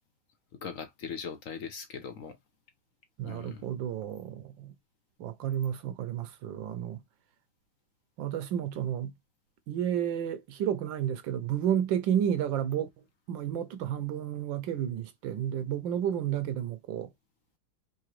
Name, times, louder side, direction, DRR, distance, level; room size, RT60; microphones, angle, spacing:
voice 1, 0.6-2.4 3.2-3.6, left 6 dB, 60° left, 0.8 m, -40 dB
voice 2, 3.2-4.7 5.2-7.0 8.2-9.1 9.7-17.1, right 10 dB, 75° right, 1.3 m, -31 dB
4.7 x 2.6 x 3.0 m
omnidirectional pair, 2.3 m